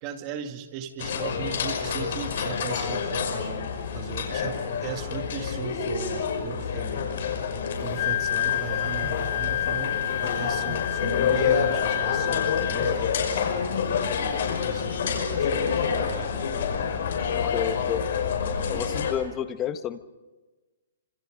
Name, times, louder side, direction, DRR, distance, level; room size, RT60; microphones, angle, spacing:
voice 1, 0.0-7.1 7.8-16.4 17.3-17.6, right 9 dB, 25° right, 6 dB, 2.2 m, -38 dB
sound 1, 1.0-19.1, left 6 dB, 55° left, 5.6 m, -28 dB
Wind instrument woodwind instrument, 7.8-13.1, left 13 dB, 35° left, 0.8 m, -29 dB
voice 2, 17.3-18.0 18.7-20.0, left 10 dB, 15° left, 11 dB, 1.2 m, -30 dB
27.5 x 27.0 x 5.2 m, 1.2 s
hypercardioid pair, 165°, 0 cm